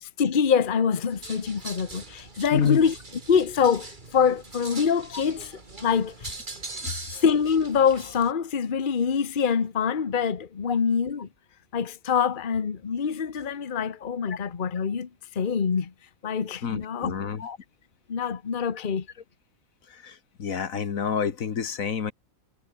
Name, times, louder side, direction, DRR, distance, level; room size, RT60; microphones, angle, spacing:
voice 1, 0.0-3.0 3.3-6.3 7.1-11.3 11.7-15.9 16.2-17.1 18.1-19.1, left 6 dB, 40° left, 1.2 m, -25 dB
sound 1, 1.1-8.3, right 3 dB, 35° right, 2.7 m, -41 dB
voice 2, 2.5-2.8 6.8-6.9 10.7-10.8 14.3-14.4 16.6-17.6 20.0-20.1 20.4-22.1, left 7 dB, 75° left, 1.8 m, -28 dB
omnidirectional pair, 1.5 m